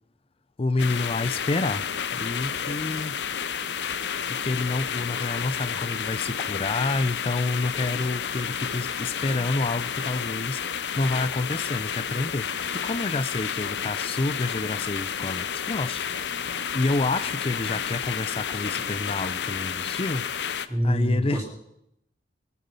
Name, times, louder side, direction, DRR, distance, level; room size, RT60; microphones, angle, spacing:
voice 1, 0.6-3.2 4.3-16.4 16.7-21.4, left 3 dB, 35° left, 0.5 m, -29 dB
sound 1, 0.8-20.7, left 7 dB, 70° left, 0.7 m, -31 dB
voice 2, 20.7-21.4, equal, 20° right, 4.0 m, -25 dB
21.5 x 8.4 x 5.5 m
head